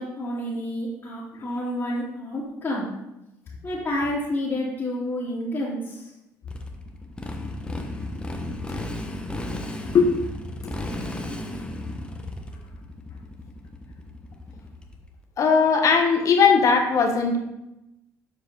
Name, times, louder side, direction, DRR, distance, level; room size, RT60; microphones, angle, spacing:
voice 1, 0.0-2.9 3.6-6.1, left 1 dB, 30° left, -9 dB, 2.3 m, -29 dB
Motorcycle, 6.5-15.1, left 1 dB, 15° left, 1.1 m, -34 dB
voice 2, 15.4-17.4, left 5 dB, 50° left, 4 dB, 1.3 m, -19 dB
7.3 x 4.8 x 4.0 m, 0.91 s
supercardioid pair, 80°, 7 cm